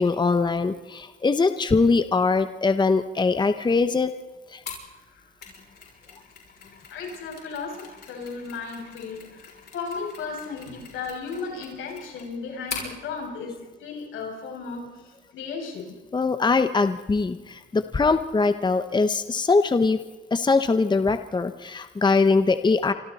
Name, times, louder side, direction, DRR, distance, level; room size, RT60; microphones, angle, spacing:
voice 1, 0.0-4.1 4.5-4.6 16.1-20.0 20.3-22.9, left 4 dB, 20° left, 10 dB, 1.0 m, -22 dB
Mechanisms, 4.7-12.9, left 5 dB, 55° left, 6.6 m, -42 dB
voice 2, 6.9-9.5 9.7-15.9, left 4 dB, 80° left, 0 dB, 7.3 m, -35 dB
29.0 x 26.0 x 4.3 m, 1.2 s
cardioid pair, 90°, 20 cm